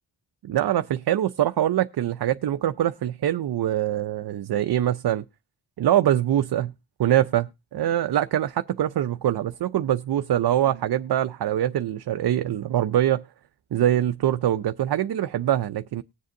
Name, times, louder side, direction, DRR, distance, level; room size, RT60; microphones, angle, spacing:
voice 1, 0.4-5.2 5.8-6.7 7.0-13.2 13.7-16.0, right 11 dB, 65° right, 0.5 m, -23 dB
19.5 x 7.6 x 2.6 m
wide cardioid pair, 125°, 40 cm